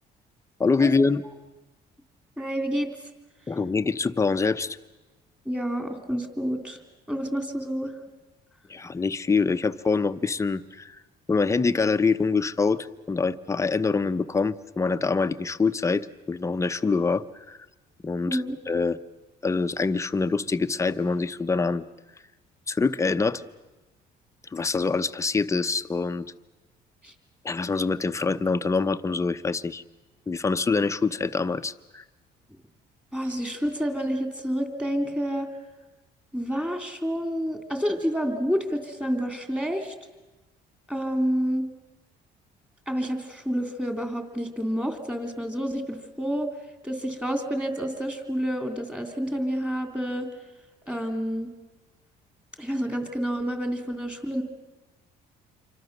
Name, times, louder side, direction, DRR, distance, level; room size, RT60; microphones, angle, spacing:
voice 1, 0.6-1.2 3.5-4.8 8.7-11.0 11.3-17.6 18.0-19.0 19.4-21.8 22.7-23.4 24.5-26.2 27.4-29.8 30.3-32.0, left 4 dB, 15° left, 10 dB, 0.8 m, -25 dB
voice 2, 2.4-2.9 5.4-6.8 7.1-7.9 18.3-18.6 27.0-27.1 33.1-35.5 36.3-39.9 40.9-41.7 42.9-46.5 46.8-50.3 50.9-51.5 52.6-54.4, equal, 5° right, 6 dB, 2.9 m, -29 dB
27.5 x 24.5 x 6.7 m, 1.1 s
cardioid pair, 110°, 17 cm